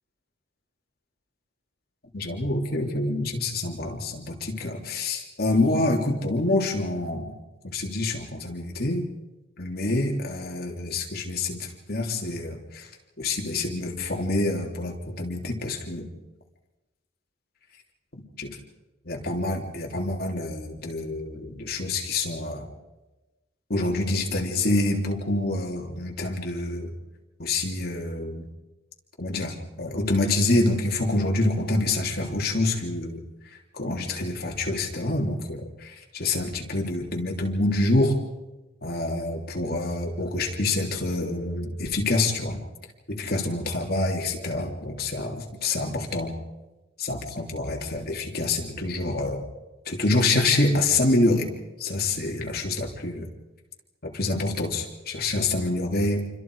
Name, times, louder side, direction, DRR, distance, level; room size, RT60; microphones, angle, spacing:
voice 1, 2.1-7.3 7.6-9.1 9.6-12.9 13.2-16.1 18.4-18.6 19.0-22.7 23.7-26.9 27.4-28.5 29.2-33.2 33.7-38.2 38.8-42.6 43.1-46.4 47.0-49.4 49.8-51.5 51.8-53.3 54.0-56.2, left 2 dB, 50° left, 1 dB, 3.3 m, -26 dB
28.5 x 25.0 x 4.9 m, 1.1 s
head